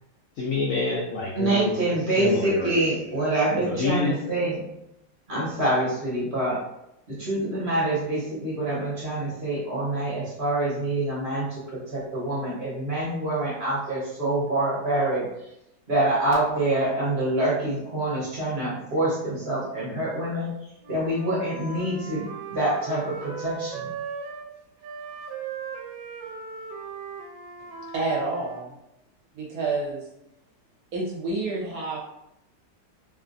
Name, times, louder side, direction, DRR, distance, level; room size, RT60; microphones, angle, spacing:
voice 1, 0.4-1.7 2.2-3.2 3.6-4.1, left 3 dB, 70° left, -4 dB, 0.8 m, -28 dB
voice 2, 1.4-4.6 5.3-6.6 7.1-15.5 15.9-20.5 20.9-23.9, right 1 dB, 45° right, -7 dB, 1.1 m, -26 dB
Wind instrument woodwind instrument, 20.8-24.5 24.8-28.7, right 5 dB, 90° right, 1.3 m, -38 dB
voice 3, 27.9-28.7 29.3-30.1 30.9-32.0, right 3 dB, 60° right, -4 dB, 1.1 m, -29 dB
3.1 x 2.5 x 2.5 m, 0.84 s
omnidirectional pair, 1.9 m